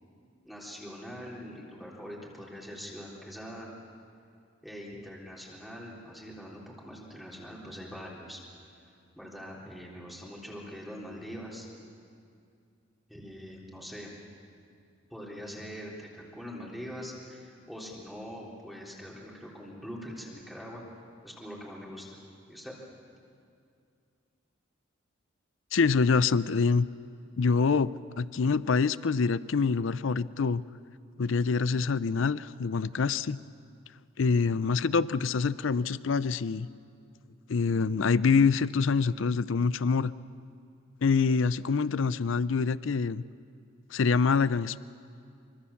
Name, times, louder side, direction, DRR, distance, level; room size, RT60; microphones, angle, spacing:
voice 1, 0.4-3.7 4.6-8.4 8.7-8.8 9.2-11.7 13.1-14.1 15.1-20.8 21.2-22.2 22.5-22.7, equal, ahead, -4 dB, 3.6 m, -43 dB
voice 2, 25.7-26.9 27.4-30.6 31.2-33.4 34.2-36.7 37.5-40.1 41.0-43.2 43.9-44.8, left 5 dB, 70° left, 17 dB, 0.5 m, -25 dB
25.0 x 25.0 x 7.1 m, 2.4 s
head